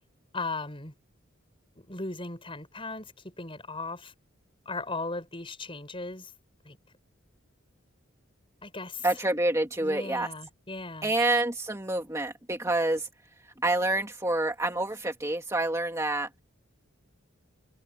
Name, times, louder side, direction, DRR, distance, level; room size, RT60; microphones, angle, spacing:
voice 1, 0.3-0.9 1.8-4.1 4.7-6.3 6.6-6.8 8.6-9.1 9.8-11.1, left 3 dB, 25° left, 7.7 m, -37 dB
voice 2, 9.0-10.3 11.0-13.1 13.6-16.3, right 2 dB, 15° right, 2.3 m, -27 dB
open air
head